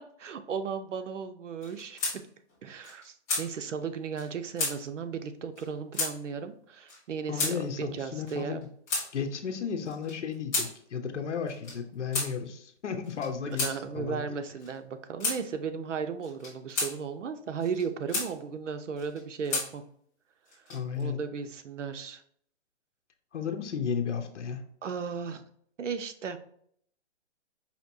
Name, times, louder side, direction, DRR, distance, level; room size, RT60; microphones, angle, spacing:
voice 1, 0.0-2.2 2.6-8.6 13.4-19.8 20.6-22.2 24.8-25.4 25.8-26.4, right 6 dB, 90° right, 9 dB, 0.7 m, -35 dB
sound 1, 1.6-2.2 2.5-2.6 2.8-3.5 4.2-4.3 4.6-4.7 5.6-5.7 5.9-6.1 6.9-7.0 7.4-7.5 8.3-9.1 9.8-10.7 11.5-11.8 12.1-12.3 13.0-13.7 14.6-14.7 15.2-15.4 16.2-16.9 17.6-18.3 19.0-19.7 20.5-21.0, left 3 dB, 15° left, 1.0 m, -31 dB
voice 2, 7.3-8.7 9.1-13.7 13.9-14.3 20.7-21.2 23.3-24.6, left 6 dB, 75° left, 5 dB, 0.8 m, -34 dB
5.1 x 2.8 x 2.6 m, 0.64 s
hypercardioid pair, 170°, 35 cm